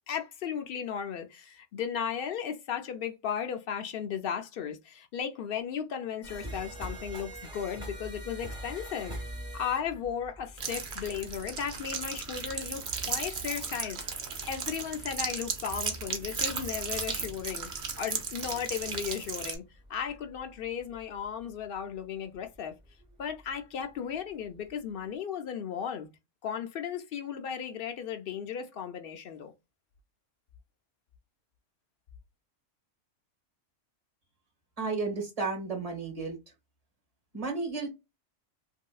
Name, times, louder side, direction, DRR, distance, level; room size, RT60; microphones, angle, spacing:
voice 1, 0.1-9.2 9.5-14.0 14.4-17.7 18.0-19.6 19.9-22.7 23.2-26.1 26.4-29.5, left 8 dB, 60° left, 0.6 m, -35 dB
sound 1, 6.2-21.6 22.3-22.5 22.9-23.5 24.1-24.2 24.7-24.8, equal, 5° right, 1.9 m, -45 dB
sound 2, 10.6-19.5, right 5 dB, 50° right, 0.8 m, -35 dB
voice 2, 34.8-36.4 37.3-37.9, right 4 dB, 30° right, 1.5 m, -32 dB
3.0 x 2.7 x 2.3 m
omnidirectional pair, 1.3 m